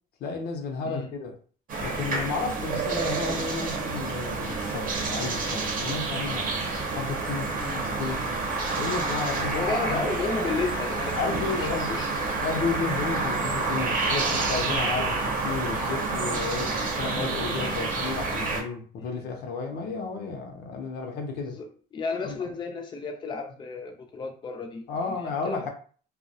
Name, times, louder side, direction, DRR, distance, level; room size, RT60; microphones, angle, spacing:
voice 1, 0.2-1.4 1.8-6.5 6.9-8.3 8.8-10.0 11.1-21.6 22.2-22.4 24.9-25.7, left 4 dB, 70° left, 0.6 m, -32 dB
sound 1, 1.7-18.6, right 3 dB, 55° right, 0.7 m, -29 dB
voice 2, 7.5-7.8 9.5-11.2 11.4-12.4 16.6-16.8 17.0-17.3 19.0-19.1 21.4-24.8 25.4-25.7, left 4 dB, 25° left, 0.4 m, -33 dB
2.3 x 2.1 x 2.6 m
cardioid pair, 110°, 17 cm